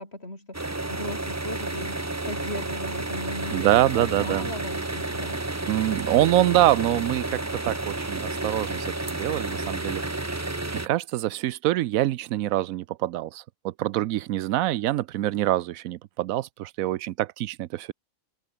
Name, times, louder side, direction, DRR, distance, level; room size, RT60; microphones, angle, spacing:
voice 1, 0.0-3.7 3.9-5.4, left 1 dB, 50° left, 7.8 m, -38 dB
sound 1, 0.5-10.9, right 2 dB, 15° right, 0.9 m, -31 dB
voice 2, 3.5-4.5 5.7-10.4 10.7-17.9, right 14 dB, 85° right, 1.0 m, -25 dB
omnidirectional pair, 1.4 m